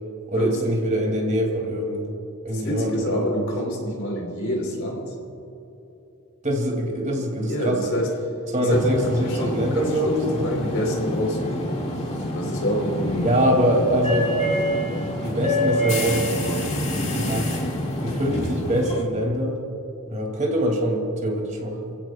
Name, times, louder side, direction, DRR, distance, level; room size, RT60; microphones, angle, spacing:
voice 1, 0.3-2.1 2.4-3.5 6.4-7.9 8.5-10.5 13.2-14.3 15.2-16.2 17.1-17.5 18.0-19.6 20.1-21.9, right 1 dB, 35° right, 0 dB, 2.9 m, -24 dB
voice 2, 2.5-5.0 7.5-8.1 8.7-8.8 9.2-10.2 10.4-11.7 12.3-13.3 13.5-13.7, equal, 60° left, 0 dB, 4.3 m, -27 dB
sound 1, 8.7-19.0, equal, 30° left, 2.3 m, -26 dB
29.0 x 16.5 x 2.5 m, 3.0 s
head